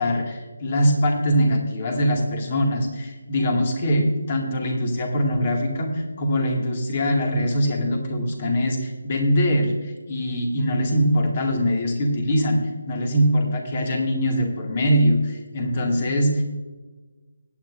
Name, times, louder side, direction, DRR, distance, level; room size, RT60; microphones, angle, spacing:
voice 1, 0.0-16.4, equal, 35° left, 2 dB, 2.1 m, -22 dB
17.5 x 9.4 x 2.6 m, 1.2 s
figure-of-eight pair, 155°, 0 cm